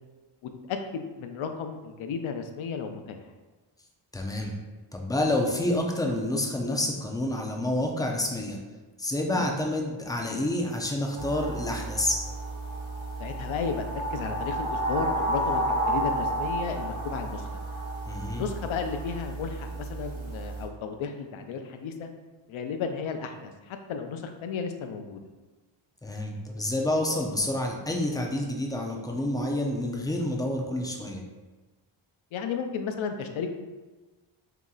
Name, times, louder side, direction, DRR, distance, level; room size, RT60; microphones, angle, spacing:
voice 1, 0.4-3.2 9.3-9.5 13.2-17.6 18.3-22.1 22.5-25.2 32.3-33.5, left 6 dB, 75° left, 6 dB, 0.6 m, -34 dB
voice 2, 4.1-4.5 4.9-8.6 9.0-12.2 18.0-18.4 26.0-31.2, left 1 dB, 10° left, 1 dB, 0.3 m, -28 dB
sound 1, 11.2-20.6, right 1 dB, 70° right, 0.9 m, -31 dB
3.0 x 2.8 x 3.7 m, 1.2 s
wide cardioid pair, 140°, 48 cm